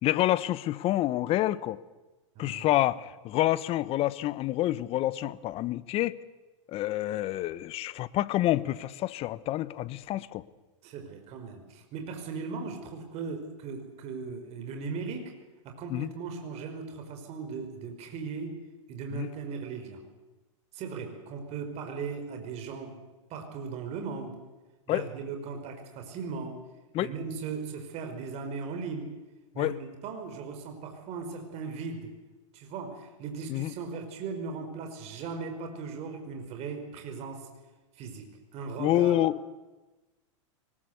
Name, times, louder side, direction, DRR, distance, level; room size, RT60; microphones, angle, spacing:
voice 1, 0.0-1.8 2.4-6.2 6.7-10.4 15.9-16.1 19.1-19.3 24.9-25.0 26.9-27.1 29.6-29.8 33.5-33.7 38.8-39.4, left 15 dB, 40° left, 17 dB, 1.1 m, -28 dB
voice 2, 2.3-2.7 10.8-15.3 15.6-18.6 18.9-20.0 20.7-23.0 23.3-24.4 24.9-26.6 27.0-29.1 29.5-32.1 32.5-37.5 37.9-38.3 38.5-39.2, right 5 dB, 40° right, 5 dB, 5.0 m, -38 dB
23.5 x 20.0 x 8.1 m, 1.1 s
hypercardioid pair, 120°, 16 cm